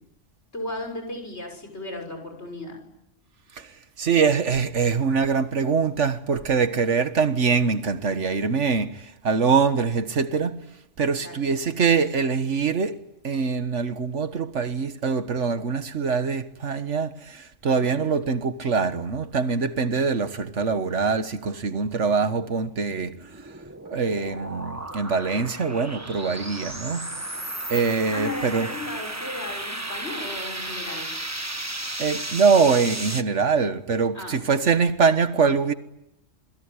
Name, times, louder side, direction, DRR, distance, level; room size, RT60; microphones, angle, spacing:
voice 1, 0.5-2.8 11.2-11.4 17.8-18.0 28.1-31.1 34.1-34.4, left 2 dB, 65° left, 6.9 m, -35 dB
voice 2, 3.5-10.7 11.0-23.6 23.9-27.3 27.7-28.7 32.0-35.7, right 5 dB, 90° right, 1.8 m, -24 dB
sound 1, 23.1-33.2, right 1 dB, 15° right, 1.3 m, -34 dB
28.0 x 21.0 x 9.9 m
omnidirectional pair, 1.2 m